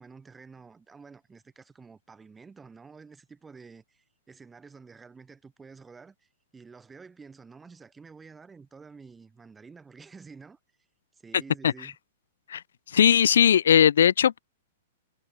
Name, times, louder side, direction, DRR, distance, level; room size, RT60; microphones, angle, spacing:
voice 1, 0.0-10.6 11.1-12.0, right 5 dB, 15° right, 1.7 m, -50 dB
voice 2, 12.9-14.4, left 9 dB, 70° left, 0.4 m, -18 dB
figure-of-eight pair, 110°, 0 cm